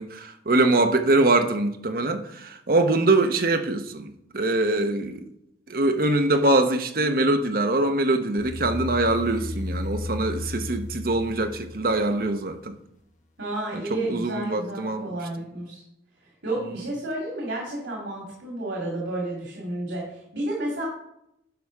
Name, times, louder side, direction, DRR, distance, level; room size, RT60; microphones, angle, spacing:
voice 1, 0.0-5.2 5.7-12.8 13.7-15.2, right 2 dB, 50° right, 0.8 m, -23 dB
sound 1, 8.4-12.5, left 2 dB, 40° left, 1.2 m, -34 dB
voice 2, 13.4-15.8 16.2-20.9, right 1 dB, 90° right, 2.5 m, -31 dB
10.5 x 3.6 x 6.5 m
head